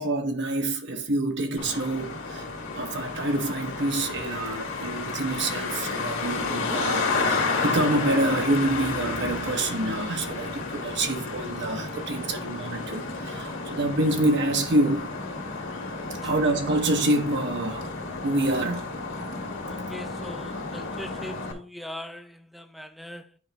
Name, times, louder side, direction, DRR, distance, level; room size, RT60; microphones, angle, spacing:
voice 1, 0.0-2.5 2.7-15.1 16.2-17.9 18.2-18.9, right 1 dB, 55° right, 1.0 m, -27 dB
Traffic noise roadway noise, 1.6-21.5, left 3 dB, 65° left, 2.1 m, -31 dB
voice 2, 19.7-23.4, equal, ahead, 0.6 m, -41 dB
9.7 x 5.0 x 3.3 m
head